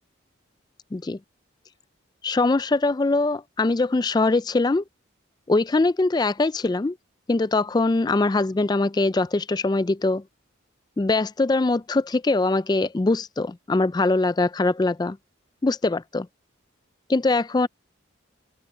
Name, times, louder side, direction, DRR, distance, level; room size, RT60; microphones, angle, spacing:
voice 1, 2.2-4.8 5.5-7.0 7.3-10.2 11.0-15.2 15.6-16.3 17.1-17.7, left 2 dB, 20° left, 0.3 m, -22 dB
open air
head